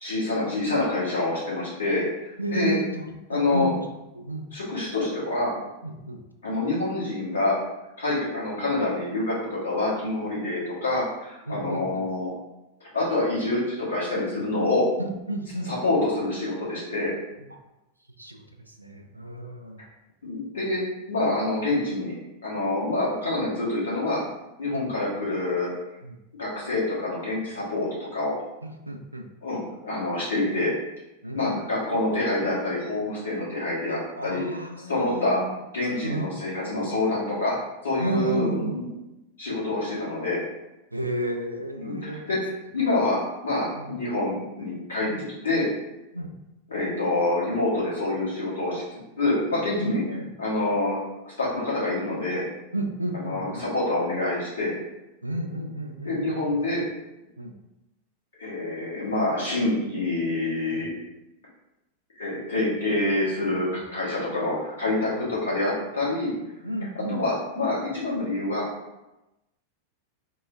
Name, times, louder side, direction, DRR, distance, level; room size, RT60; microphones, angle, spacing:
voice 1, 0.0-2.8 3.3-3.7 4.5-5.5 6.4-7.5 8.0-12.3 12.9-14.9 15.6-17.1 20.2-20.8 21.1-22.1 22.4-24.2 24.6-25.7 26.4-28.3 29.4-30.7 31.3-34.6 34.9-35.4 35.7-37.5 37.8-38.9 39.4-40.4 41.8-45.1 45.4-45.7 46.7-50.0 50.4-51.0 51.2-52.4 53.2-54.7 56.0-56.8 58.4-60.9 62.1-66.3 67.1-68.6, left 2 dB, 70° left, -7 dB, 1.2 m, -26 dB
voice 2, 2.4-3.8 4.1-4.5 5.8-6.2 11.5-12.1 15.0-15.7 18.2-18.4 18.8-19.8 24.7-24.8 26.0-26.2 28.6-29.2 31.2-32.1 34.2-35.5 36.0-36.3 38.0-38.8 40.9-42.2 43.8-43.9 45.0-45.2 46.1-46.3 49.8-50.3 52.7-53.6 55.2-56.6 57.4-57.5 60.7-60.8 63.7-63.8 65.2-65.3 66.6-67.2, right 1 dB, 85° right, 4 dB, 0.3 m, -32 dB
3.6 x 2.1 x 2.5 m, 0.97 s
figure-of-eight pair, 90°, 0 cm